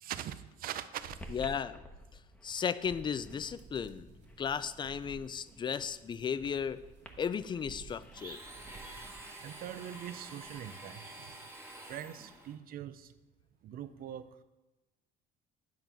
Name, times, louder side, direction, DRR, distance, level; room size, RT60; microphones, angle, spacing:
voice 1, 0.0-1.2 9.4-11.1 11.9-13.1 13.6-14.3, right 10 dB, 60° right, 12 dB, 0.5 m, -42 dB
sound 1, 1.0-12.5, equal, 5° left, 1.0 m, -55 dB
voice 2, 1.3-1.8 2.4-4.1 4.4-6.8 7.2-8.4 8.8-9.1, left 7 dB, 25° left, 15 dB, 0.4 m, -35 dB
sound 2, 2.8-9.2, right 3 dB, 45° right, 1.6 m, -54 dB
Domestic sounds home sounds, 8.1-12.6, right 2 dB, 15° right, 1.2 m, -48 dB
10.5 x 3.7 x 5.9 m, 1.0 s
cardioid pair, 110°, 17 cm